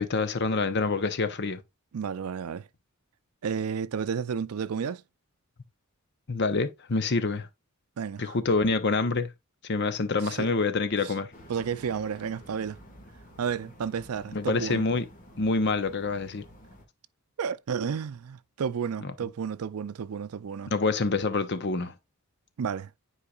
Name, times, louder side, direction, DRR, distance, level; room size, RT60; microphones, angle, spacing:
voice 1, 0.0-1.6 6.3-7.5 8.2-9.3 9.6-11.3 14.3-15.1 15.4-16.4 19.0-19.1 20.7-21.9, left 3 dB, 55° left, 0.8 m, -26 dB
voice 2, 1.9-2.7 3.4-5.0 8.0-8.3 10.2-10.5 11.0-11.1 11.5-12.8 13.4-14.8 17.4-20.7 22.6-22.9, right 6 dB, 85° right, 0.4 m, -32 dB
sound 1, 11.3-16.8, equal, 35° left, 2.0 m, -51 dB
9.9 x 4.6 x 2.4 m
head